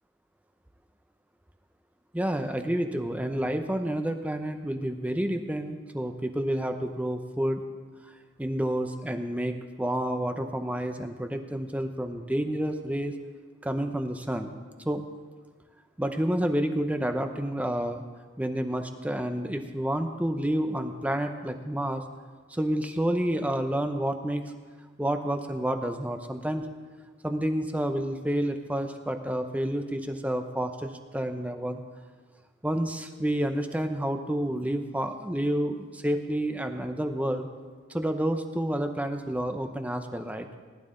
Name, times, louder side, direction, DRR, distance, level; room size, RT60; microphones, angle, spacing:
voice 1, 2.1-7.6 8.0-8.1 8.4-13.1 13.6-14.6 14.8-15.1 16.0-18.0 18.4-22.0 22.5-24.4 25.0-26.7 27.2-31.8 32.6-37.5 37.9-40.5, right 1 dB, 5° right, 6 dB, 0.6 m, -29 dB
19.5 x 11.5 x 3.8 m, 1.4 s
head